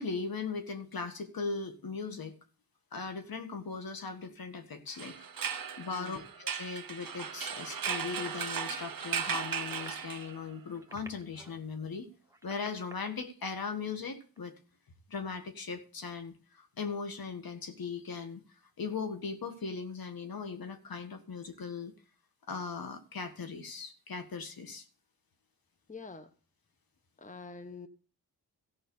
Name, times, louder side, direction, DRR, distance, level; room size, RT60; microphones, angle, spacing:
voice 1, 0.0-2.4 2.9-5.2 5.8-12.1 12.4-14.5 15.1-18.4 18.8-21.9 22.5-24.9, left 5 dB, 65° left, 7 dB, 1.8 m, -39 dB
sound 1, 4.9-10.6, right 7 dB, 60° right, 1.1 m, -37 dB
voice 2, 5.9-6.3 25.9-26.3 27.2-27.9, left 4 dB, 20° left, 9 dB, 1.0 m, -46 dB
sound 2, 7.7-8.3 9.4-10.0 10.7-11.6 12.2-13.1 14.3-14.4, right 2 dB, 10° right, 1.3 m, -51 dB
14.5 x 5.6 x 7.0 m, 0.40 s
cardioid pair, 60°, 38 cm